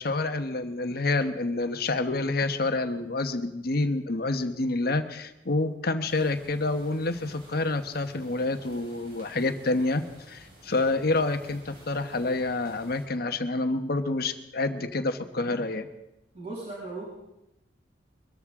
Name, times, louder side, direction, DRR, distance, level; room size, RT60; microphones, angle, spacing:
voice 1, 0.0-15.9, left 2 dB, 55° left, 8 dB, 1.1 m, -28 dB
sound 1, 6.0-13.1, right 1 dB, 55° right, 4.8 m, -52 dB
voice 2, 16.3-17.1, right 2 dB, 40° right, -7 dB, 6.7 m, -37 dB
23.0 x 13.5 x 3.7 m, 0.88 s
head